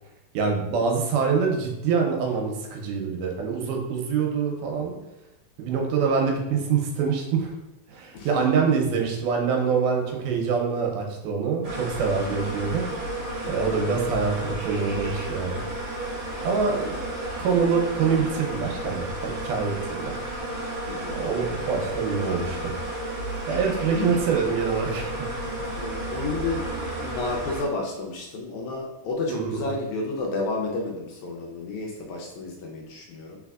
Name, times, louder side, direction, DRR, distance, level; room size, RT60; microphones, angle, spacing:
voice 1, 0.3-5.0 5.6-7.5 7.9-12.8 13.5-15.6 16.4-17.0 17.4-20.1 21.1-22.7 23.5-25.2 25.6-25.9 29.3-29.7, right 5 dB, 85° right, 1 dB, 2.2 m, -25 dB
sound 1, 11.6-27.6, right 1 dB, 60° right, 1.3 m, -32 dB
voice 2, 13.4-13.9 20.8-21.2 23.9-24.3 25.8-33.4, left 3 dB, 75° left, 0 dB, 1.8 m, -31 dB
4.2 x 4.0 x 2.3 m, 0.93 s
omnidirectional pair, 3.6 m